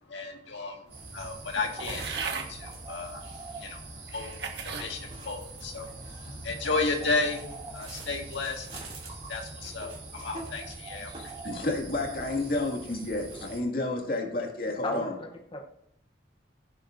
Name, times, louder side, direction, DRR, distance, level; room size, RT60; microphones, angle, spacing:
voice 1, 0.0-8.9 9.3-11.4, left 3 dB, 85° left, 2 dB, 1.8 m, -34 dB
sound 1, 0.9-13.6, right 2 dB, 35° right, 2.7 m, -42 dB
sound 2, 1.9-2.5 3.3-3.4 4.1-4.9 5.5-5.9, right 5 dB, 65° right, 1.5 m, -36 dB
voice 2, 11.4-15.1, left 2 dB, 50° left, 1 dB, 2.1 m, -30 dB
voice 3, 14.8-15.6, left 1 dB, 30° left, 2 dB, 0.8 m, -36 dB
15.5 x 9.8 x 2.6 m, 0.76 s
head